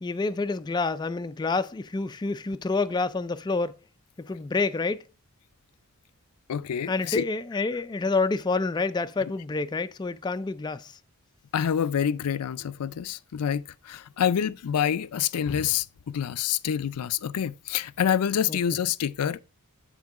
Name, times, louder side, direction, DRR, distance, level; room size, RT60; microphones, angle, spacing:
voice 1, 0.0-3.8 4.2-5.0 6.9-10.9 18.5-18.6, left 3 dB, 20° left, 0.3 m, -28 dB
voice 2, 6.5-7.2 11.5-19.4, left 8 dB, 85° left, 0.4 m, -27 dB
9.5 x 3.8 x 4.7 m
head